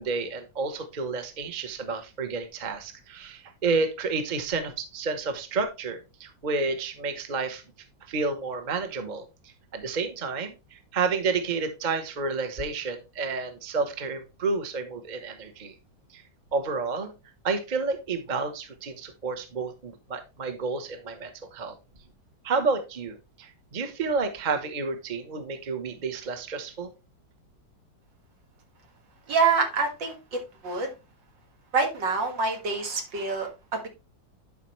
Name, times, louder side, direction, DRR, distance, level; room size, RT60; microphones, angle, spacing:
voice 1, 0.0-7.6 8.1-9.3 9.7-15.7 16.1-16.2 16.5-17.1 17.4-21.7 22.4-26.9, right 4 dB, 30° right, 1.0 m, -30 dB
voice 2, 29.3-30.9 31.7-33.9, right 4 dB, 75° right, 2.5 m, -26 dB
11.0 x 5.1 x 3.1 m
omnidirectional pair, 2.0 m